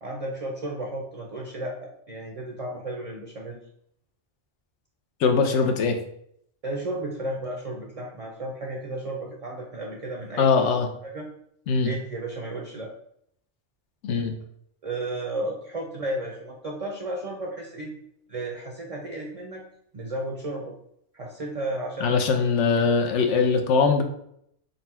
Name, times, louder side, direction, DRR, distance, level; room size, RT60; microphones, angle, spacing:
voice 1, 0.0-3.6 6.6-10.7 11.0-11.3 11.8-12.9 14.8-18.0 18.3-19.6 19.9-20.7 21.1-22.2, right 1 dB, 45° right, 0 dB, 0.5 m, -33 dB
voice 2, 5.2-6.0 10.4-10.9 11.7-11.9 14.0-14.3 22.0-24.0, left 5 dB, 85° left, 4 dB, 1.0 m, -21 dB
4.0 x 2.2 x 4.2 m, 0.72 s
omnidirectional pair, 1.2 m